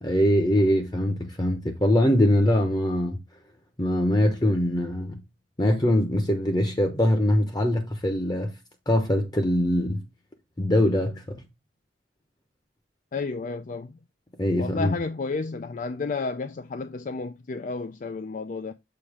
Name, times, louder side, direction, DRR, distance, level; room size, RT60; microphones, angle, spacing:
voice 1, 0.0-3.2 3.8-5.2 5.6-8.5 8.9-10.0 10.6-11.4 14.4-15.0, left 1 dB, 25° left, 0.9 m, -23 dB
voice 2, 13.1-14.0 14.6-18.7, left 4 dB, 45° left, 0.4 m, -31 dB
6.9 x 2.9 x 4.8 m
head